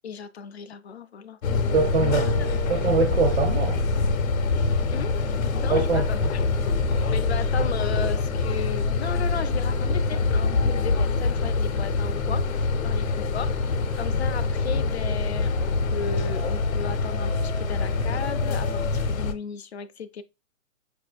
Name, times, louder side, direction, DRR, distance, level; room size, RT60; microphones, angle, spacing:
voice 1, 0.0-1.4 1.6-2.5 4.9-6.7 7.1-13.6 14.0-20.2, left 6 dB, 55° left, 0.5 m, -36 dB
sound 1, 1.4-19.3, left 3 dB, 75° left, 0.8 m, -25 dB
voice 2, 1.7-2.3 2.7-3.8 5.7-6.3, right 4 dB, 55° right, 0.5 m, -23 dB
Bass guitar, 2.1-4.5, right 3 dB, 70° right, 1.4 m, -39 dB
5.3 x 2.6 x 2.3 m
hypercardioid pair, 180°, 41 cm